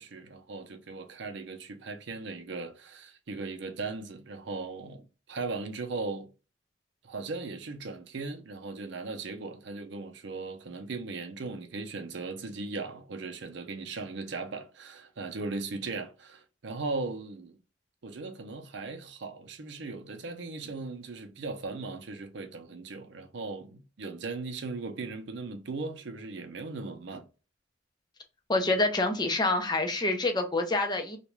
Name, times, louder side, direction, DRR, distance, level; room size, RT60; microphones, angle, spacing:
voice 1, 0.0-6.3 7.0-17.6 18.0-27.2, right 3 dB, 70° right, 0.6 m, -38 dB
voice 2, 28.5-31.2, left 2 dB, 25° left, 0.5 m, -27 dB
2.4 x 2.2 x 3.0 m
head